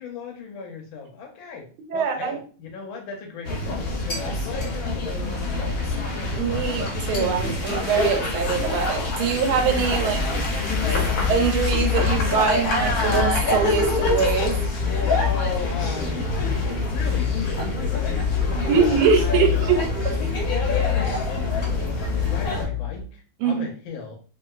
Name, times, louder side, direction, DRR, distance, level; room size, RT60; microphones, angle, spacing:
voice 1, 0.0-5.9 15.1-19.6 20.7-24.1, left 5 dB, 75° left, 2 dB, 1.5 m, -37 dB
voice 2, 1.9-2.4 6.3-10.2 11.3-14.6 18.7-19.8 20.0-20.2 23.4-23.6, right 6 dB, 90° right, 5 dB, 1.5 m, -23 dB
sound 1, 3.4-22.6, left 2 dB, 60° left, 1.1 m, -26 dB
sound 2, 9.6-23.0, left 10 dB, 65° right, 1.3 m, -28 dB
3.6 x 2.4 x 2.3 m, 0.39 s
omnidirectional pair, 2.3 m